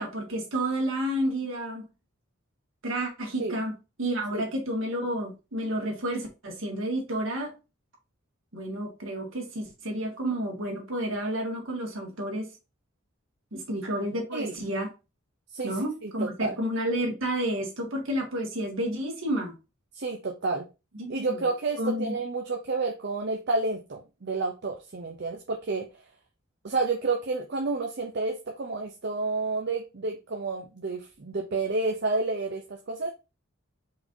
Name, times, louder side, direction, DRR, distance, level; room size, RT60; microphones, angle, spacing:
voice 1, 0.0-1.8 2.8-3.7 4.0-7.5 8.5-12.5 13.5-14.9 15.6-19.5 20.9-21.4 21.8-22.1, right 1 dB, 65° right, 1.7 m, -30 dB
voice 2, 16.0-16.6 19.9-20.7 21.1-25.9 26.6-33.1, right 3 dB, 50° right, 0.6 m, -30 dB
4.7 x 4.1 x 2.7 m
head